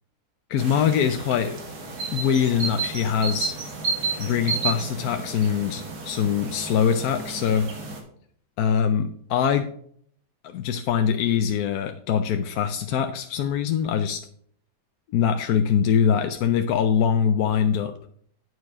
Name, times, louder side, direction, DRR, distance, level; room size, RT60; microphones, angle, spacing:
voice 1, 0.5-1.6 2.1-3.5 4.2-7.7 8.6-9.7 10.4-14.2 15.1-17.9, left 8 dB, 75° left, 7 dB, 1.1 m, -23 dB
sound 1, 0.6-8.0, right 4 dB, 70° right, 2.3 m, -32 dB
9.3 x 4.7 x 6.0 m, 0.62 s
omnidirectional pair, 1.7 m